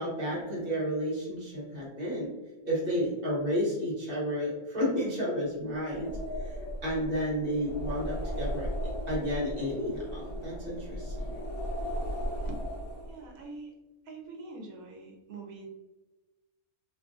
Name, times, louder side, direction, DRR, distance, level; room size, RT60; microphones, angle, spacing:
voice 1, 0.0-2.3 2.6-8.7 9.1-11.3, equal, 45° right, -5 dB, 1.3 m, -32 dB
sound 1, 5.8-13.3, equal, 80° left, 1.1 m, -36 dB
voice 2, 13.1-13.8 14.0-15.7, right 3 dB, 75° right, 1 dB, 1.1 m, -44 dB
3.0 x 2.5 x 2.4 m, 1.1 s
omnidirectional pair, 1.5 m